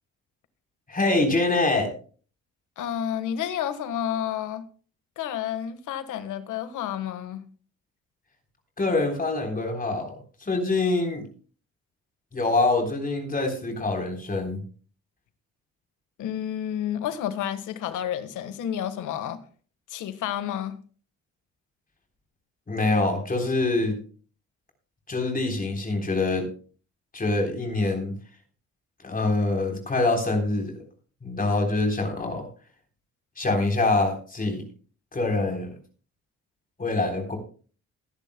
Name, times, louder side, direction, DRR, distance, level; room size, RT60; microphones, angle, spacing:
voice 1, 0.9-1.9 8.8-11.2 12.3-14.6 22.7-24.0 25.1-26.5 27.1-28.1 29.0-30.8 31.2-32.5 33.4-34.6 35.1-35.7 36.8-37.4, left 2 dB, 30° left, 3 dB, 3.7 m, -25 dB
voice 2, 2.8-4.6 5.2-7.4 16.2-19.4 19.9-20.7, left 10 dB, 85° left, 11 dB, 1.5 m, -30 dB
21.0 x 10.5 x 2.2 m, 0.39 s
cardioid pair, 90°, 30 cm